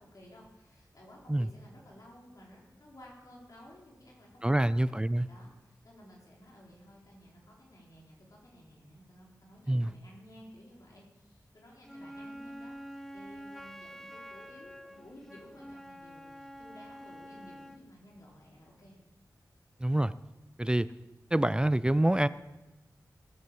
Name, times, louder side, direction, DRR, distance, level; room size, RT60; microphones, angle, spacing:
voice 1, 0.0-4.7 5.3-19.0, left 1 dB, 60° left, -3 dB, 4.0 m, -55 dB
voice 2, 4.4-5.3 9.7-9.9 19.8-20.1 20.6-20.9 21.3-22.3, right 1 dB, 15° right, 16 dB, 0.4 m, -26 dB
Wind instrument woodwind instrument, 11.8-17.9, equal, 5° left, 1.0 m, -47 dB
17.5 x 8.1 x 7.5 m, 1.1 s
wide cardioid pair, 85°, 7 cm